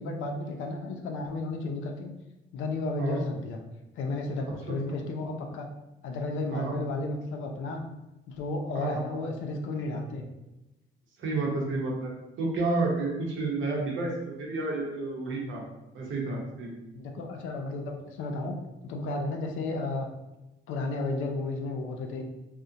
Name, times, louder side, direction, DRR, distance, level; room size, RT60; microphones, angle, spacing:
voice 1, 0.0-2.1 2.5-3.6 4.0-5.7 6.0-7.8 8.3-10.3 16.9-18.6 18.8-20.1 20.7-22.2, left 2 dB, 85° left, 3 dB, 0.4 m, -33 dB
voice 2, 8.7-9.2 11.2-12.1 12.4-15.6 15.9-16.7, right 3 dB, 75° right, -1 dB, 0.8 m, -30 dB
2.4 x 2.0 x 2.7 m, 0.97 s
cardioid pair, 90°, 20 cm